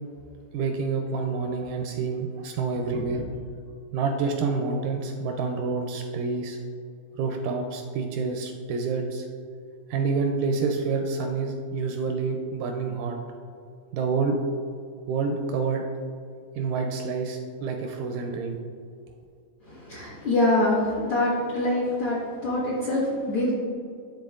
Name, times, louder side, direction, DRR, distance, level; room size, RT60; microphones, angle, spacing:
voice 1, 0.5-3.2 3.9-6.6 7.2-9.3 9.9-13.2 13.9-14.4 15.1-15.8 16.6-18.6, right 4 dB, 80° right, 3 dB, 1.9 m, -28 dB
voice 2, 19.7-23.5, left 1 dB, 55° left, -9 dB, 1.5 m, -25 dB
11.5 x 3.9 x 2.4 m, 2.4 s
omnidirectional pair, 4.0 m